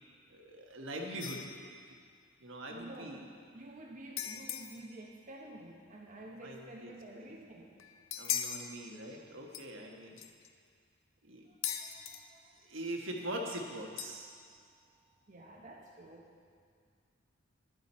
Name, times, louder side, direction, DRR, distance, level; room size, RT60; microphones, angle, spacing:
voice 1, 0.3-1.7 2.4-3.2 6.4-7.3 8.2-10.2 11.2-11.5 12.6-14.3, right 1 dB, 70° right, 0 dB, 1.4 m, -42 dB
sound 1, 1.2-1.8 4.2-4.9 7.8-8.7 9.5-9.6 10.2-10.5 11.6-12.2 14.0-14.5, left 9 dB, 85° left, 0.6 m, -39 dB
voice 2, 2.7-3.2 3.5-7.7 11.5-12.6 14.4-14.5 15.3-16.2, right 1 dB, 40° right, -2 dB, 1.0 m, -50 dB
11.5 x 11.0 x 4.3 m, 2.1 s
head